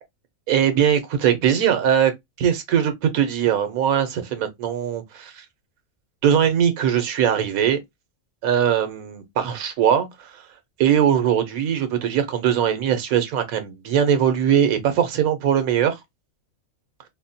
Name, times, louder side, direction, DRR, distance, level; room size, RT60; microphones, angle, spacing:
voice 1, 0.5-2.1 2.4-5.4 6.2-7.8 8.4-10.3 10.8-16.0, right 9 dB, 85° right, 1.2 m, -20 dB
3.9 x 2.1 x 2.7 m
omnidirectional pair, 1.5 m